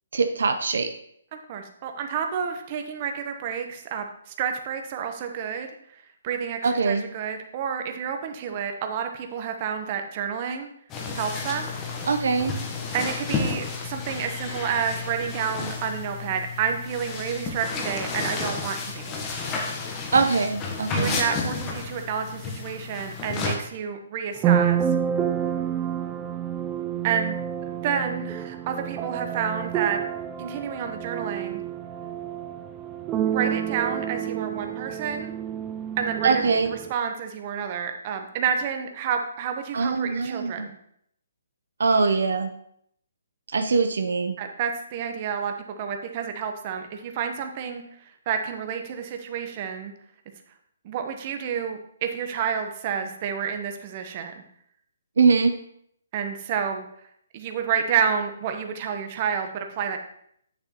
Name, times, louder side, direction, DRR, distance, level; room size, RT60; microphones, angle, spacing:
voice 1, 0.1-0.9 6.6-7.0 12.1-12.5 20.1-21.2 36.2-36.7 39.7-40.7 41.8-42.5 43.5-44.3 55.2-55.6, right 4 dB, 75° right, 7 dB, 0.6 m, -22 dB
voice 2, 1.3-5.7 6.2-10.7 11.1-11.7 12.9-19.2 20.9-24.8 27.0-27.4 27.7-30.0 30.4-31.6 33.3-35.3 36.0-40.7 44.4-47.8 48.3-49.9 50.8-54.4 56.1-56.8 57.3-60.0, right 7 dB, 35° right, 5 dB, 0.9 m, -29 dB
sound 1, 10.9-23.5, left 4 dB, 20° left, 1.0 m, -32 dB
sound 2, 24.3-36.9, right 9 dB, 20° right, 0.3 m, -29 dB
7.9 x 6.8 x 2.9 m, 0.70 s
hypercardioid pair, 155°, 0 cm